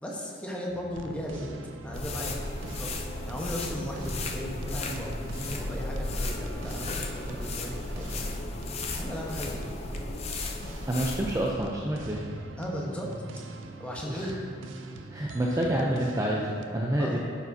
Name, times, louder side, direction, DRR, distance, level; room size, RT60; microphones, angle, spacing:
voice 1, 0.0-1.5 1.8-2.3 2.7-8.3 8.9-9.8 12.6-13.1 13.8-14.4 17.0-17.2, equal, 5° left, -3 dB, 1.0 m, -36 dB
sound 1, 0.7-16.7, right 3 dB, 75° right, 0.5 m, -44 dB
sound 2, 1.9-11.5, left 2 dB, 35° left, 0.6 m, -35 dB
voice 2, 10.9-12.3 14.1-14.2 15.1-17.2, right 1 dB, 15° right, -2 dB, 0.5 m, -28 dB
10.0 x 7.1 x 2.7 m, 2.4 s
head